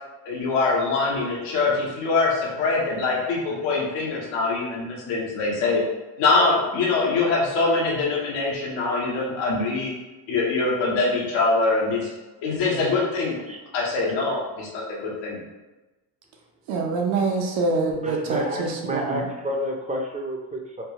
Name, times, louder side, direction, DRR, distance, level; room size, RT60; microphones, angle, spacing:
voice 1, 0.3-5.8 6.2-9.9 10.3-12.1 12.4-13.4 13.7-15.4, left 3 dB, 80° left, -4 dB, 0.9 m, -23 dB
voice 2, 16.7-19.3, right 3 dB, 75° right, 1 dB, 0.8 m, -25 dB
voice 3, 18.0-20.8, equal, 15° right, 1 dB, 0.5 m, -29 dB
3.4 x 2.3 x 2.9 m, 1.1 s
supercardioid pair, 85°, 46 cm